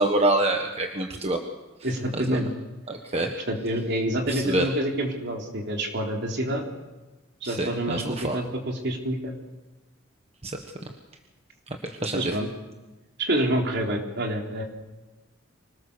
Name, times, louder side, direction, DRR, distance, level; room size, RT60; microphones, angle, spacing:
voice 1, 0.0-1.4 2.3-2.4 2.9-3.3 4.3-4.7 7.4-8.4 10.4-10.6 11.8-12.4, right 2 dB, 30° right, 3 dB, 1.4 m, -26 dB
voice 2, 1.8-2.5 3.5-6.6 7.4-9.3 12.1-12.5 13.2-14.6, right 1 dB, 60° right, 1 dB, 3.8 m, -27 dB
25.5 x 19.0 x 6.9 m, 1.1 s
head